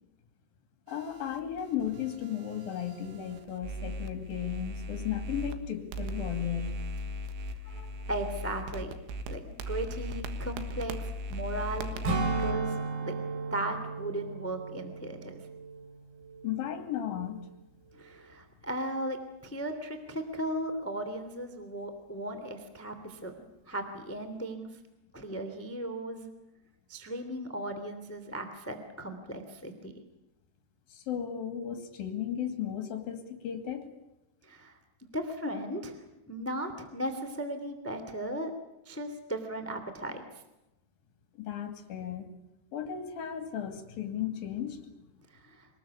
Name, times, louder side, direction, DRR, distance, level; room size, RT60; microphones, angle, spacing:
voice 1, 0.9-6.8 7.7-8.0 16.4-17.5 30.9-33.9 41.4-42.3 42.7-45.1, left 9 dB, 50° left, 6 dB, 3.8 m, -35 dB
sound 1, 0.9-5.6 5.9-12.5, left 1 dB, 75° right, 3.8 m, -38 dB
voice 2, 8.1-9.0 9.3-12.7 13.0-13.2 13.5-15.4 18.0-19.2 19.4-23.3 23.7-24.7 25.1-26.3 26.9-29.9 34.4-34.8 35.1-36.0 36.3-38.5 38.8-40.2 45.3-45.7, right 1 dB, 15° left, 8 dB, 0.5 m, -36 dB
Strum, 12.1-16.8 17.1-17.4, right 3 dB, 50° right, 4.3 m, -35 dB
25.5 x 19.5 x 8.4 m, 0.93 s
omnidirectional pair, 5.9 m